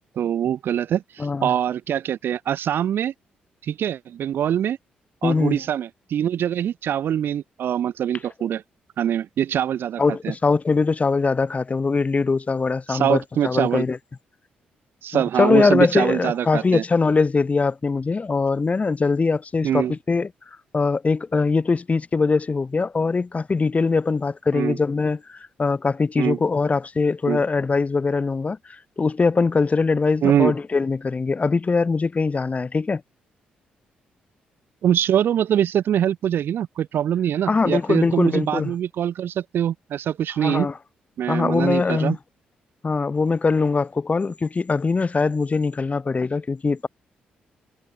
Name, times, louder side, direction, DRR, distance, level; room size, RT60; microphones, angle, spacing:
voice 1, 0.2-3.1 3.6-4.8 5.2-8.6 9.0-10.3 12.9-13.8 15.0-16.8 19.6-19.9 24.5-24.8 26.2-26.4 27.3-27.4 30.2-30.5 34.8-40.7 41.2-42.2, right 10 dB, 65° right, 1.9 m, -23 dB
voice 2, 1.2-1.5 5.2-5.6 10.0-14.0 15.1-20.3 20.7-33.0 37.5-38.7 40.4-40.7 41.3-42.2 42.8-46.9, left 4 dB, 35° left, 4.9 m, -22 dB
hypercardioid pair, 50°, 4 cm